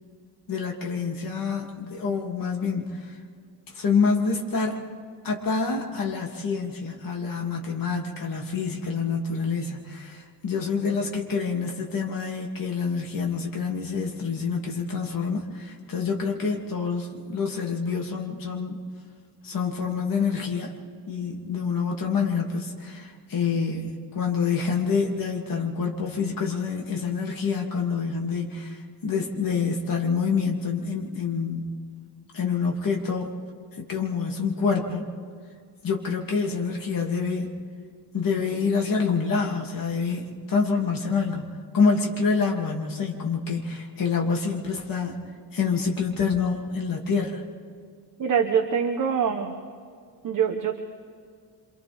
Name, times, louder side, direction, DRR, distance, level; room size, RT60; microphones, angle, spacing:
voice 1, 0.5-3.0 3.7-4.8 5.2-18.8 19.4-20.8 21.1-31.8 32.3-33.3 33.8-35.1 35.8-37.5 38.1-45.2 45.5-47.4, left 5 dB, 45° left, 0 dB, 2.7 m, -27 dB
voice 2, 48.2-49.6 50.2-50.8, right 7 dB, 45° right, 4 dB, 1.2 m, -24 dB
27.5 x 26.5 x 3.6 m, 2.1 s
cardioid pair, 165°, 44 cm